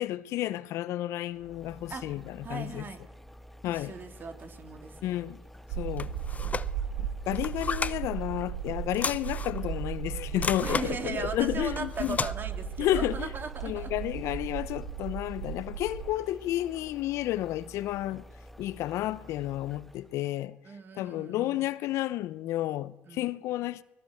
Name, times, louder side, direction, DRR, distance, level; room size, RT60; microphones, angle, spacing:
voice 1, 0.0-2.8 3.6-3.9 5.0-5.4 5.8-6.2 7.0-12.2 12.8-13.3 13.6-18.2 18.6-20.6 20.9-23.8, left 14 dB, 70° left, 0.8 m, -31 dB
sound 1, 1.3-20.2, equal, 5° left, 1.5 m, -50 dB
voice 2, 2.4-3.0 3.7-5.1 10.6-13.9 20.6-21.7 23.1-23.4, right 5 dB, 45° right, 3.7 m, -38 dB
sound 2, 5.7-16.1, right 8 dB, 90° right, 1.8 m, -36 dB
sound 3, 6.0-6.7 7.3-8.0 8.9-9.6 10.4-10.9 11.8-12.3, left 4 dB, 30° left, 0.8 m, -33 dB
23.0 x 21.0 x 8.0 m
hypercardioid pair, 65°, 5 cm